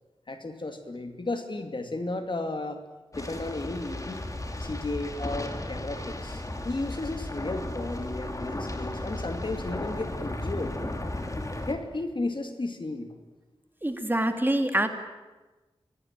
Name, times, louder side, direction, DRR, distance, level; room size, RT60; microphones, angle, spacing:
voice 1, 0.3-2.8 3.1-4.3 4.6-10.7 11.7-13.1, left 2 dB, 55° left, 6 dB, 2.6 m, -34 dB
sound 1, 3.1-11.7, left 1 dB, 35° left, 2.8 m, -35 dB
voice 2, 13.8-14.9, right 1 dB, 20° right, 6 dB, 2.4 m, -25 dB
25.0 x 18.5 x 9.1 m, 1.2 s
wide cardioid pair, 80°, 10 cm